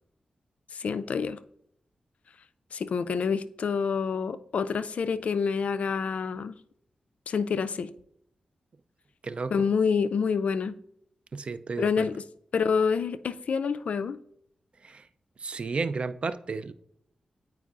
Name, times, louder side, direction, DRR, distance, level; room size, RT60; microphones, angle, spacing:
voice 1, 0.7-1.4 2.7-6.6 7.3-7.9 9.5-10.8 11.8-12.2 12.5-14.2, left 6 dB, 75° left, 0.3 m, -27 dB
voice 2, 11.3-12.1 14.8-15.1 15.4-16.7, right 4 dB, 55° right, 0.3 m, -32 dB
9.2 x 4.5 x 2.4 m
cardioid pair, 65°, 2 cm